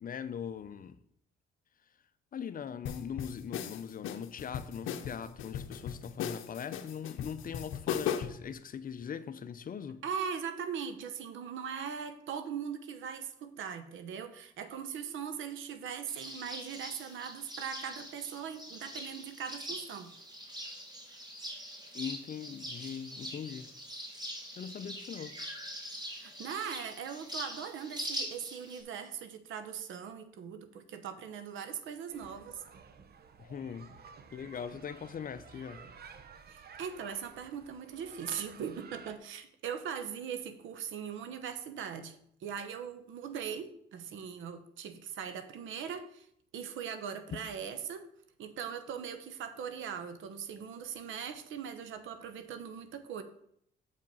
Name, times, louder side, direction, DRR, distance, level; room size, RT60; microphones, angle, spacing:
voice 1, 0.0-1.0 2.3-10.0 21.9-23.7 24.6-25.4 33.4-33.9 34.3-35.9, left 7 dB, 45° left, 0.6 m, -41 dB
sound 1, 2.8-8.4, left 9 dB, 80° left, 0.7 m, -37 dB
voice 2, 10.0-20.1 26.1-32.6 36.5-42.2 42.4-46.3 46.5-48.1 48.4-53.2, right 7 dB, 80° right, 1.0 m, -40 dB
sound 2, 16.1-28.8, equal, 20° right, 2.6 m, -43 dB
sound 3, 32.1-39.2, right 6 dB, 50° right, 0.8 m, -53 dB
7.4 x 5.2 x 5.5 m
cardioid pair, 90°, 20 cm